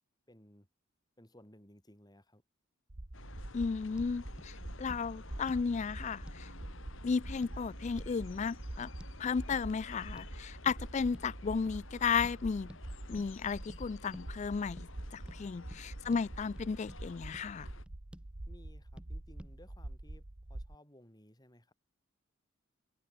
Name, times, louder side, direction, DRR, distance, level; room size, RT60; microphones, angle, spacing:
voice 1, 0.3-0.7 1.2-2.4 15.3-16.1 18.5-20.2 20.5-21.7, equal, 20° left, 6.9 m, -60 dB
sound 1, 2.9-20.8, right 1 dB, 45° right, 1.4 m, -46 dB
sound 2, 3.1-17.9, left 3 dB, 70° left, 1.8 m, -54 dB
voice 2, 3.5-6.5 7.0-8.9 9.2-12.7 13.1-14.9 15.1-17.7, left 5 dB, 35° left, 0.3 m, -34 dB
sound 3, 4.0-4.1 4.4-4.5 4.9-5.0 5.5-5.7 6.3-6.5 7.1-7.6 8.0-8.1 9.0-9.1 9.5-9.7 10.2-10.4 10.7-10.8 11.1-11.3 11.7-11.9 12.2-12.4 12.7-12.8 13.2-13.3 13.7-13.8 14.1-14.3 14.8-14.9 15.3-15.4 15.7-15.8 16.1-16.3 16.6-17.0 17.3-17.5 17.9-18.3 19.0-19.1 19.4-19.5, equal, 5° right, 6.2 m, -52 dB
head